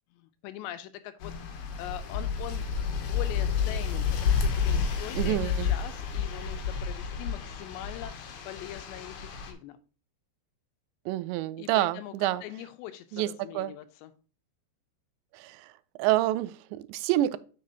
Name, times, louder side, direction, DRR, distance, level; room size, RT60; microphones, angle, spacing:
voice 1, 0.1-2.6 2.9-8.1 8.5-9.8 11.6-14.1, left 13 dB, 85° left, 2.7 m, -42 dB
sound 1, 1.2-9.5, left 6 dB, 65° left, 2.1 m, -30 dB
voice 2, 5.2-5.7 11.1-12.4 13.1-13.3 13.5-13.7 15.3-15.7 16.0-17.4, right 15 dB, 85° right, 2.8 m, -27 dB
7.4 x 6.7 x 2.7 m
omnidirectional pair, 5.1 m